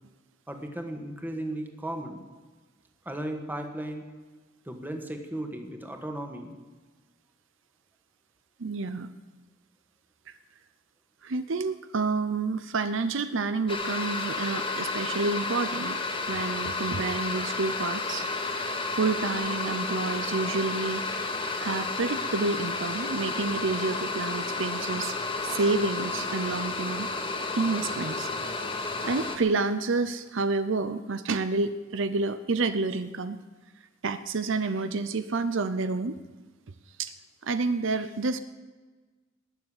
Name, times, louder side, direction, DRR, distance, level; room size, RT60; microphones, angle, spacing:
voice 1, 0.5-2.2 3.0-4.0 4.6-6.6, right 1 dB, 10° right, 4 dB, 1.7 m, -35 dB
voice 2, 8.6-9.1 10.3-10.4 11.2-16.0 16.3-18.3 18.9-21.0 21.6-25.2 25.4-27.1 27.5-28.3 29.0-33.4 34.0-36.2 37.0-37.1 37.4-38.4, right 3 dB, 70° right, 12 dB, 0.7 m, -29 dB
sound 1, 13.7-29.4, left 3 dB, 30° left, 1.8 m, -31 dB
18.5 x 7.1 x 9.7 m, 1.3 s
head